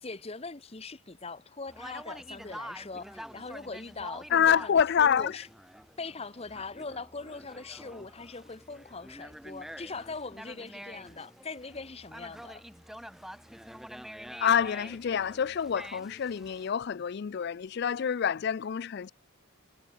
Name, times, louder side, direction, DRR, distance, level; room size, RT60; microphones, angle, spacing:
voice 1, 0.0-5.5 6.0-12.6, left 3 dB, 30° left, 1.0 m, -41 dB
Conversation, 1.7-16.7, equal, ahead, 3.3 m, -47 dB
voice 2, 4.3-5.4 14.4-19.1, left 8 dB, 50° left, 0.4 m, -27 dB
head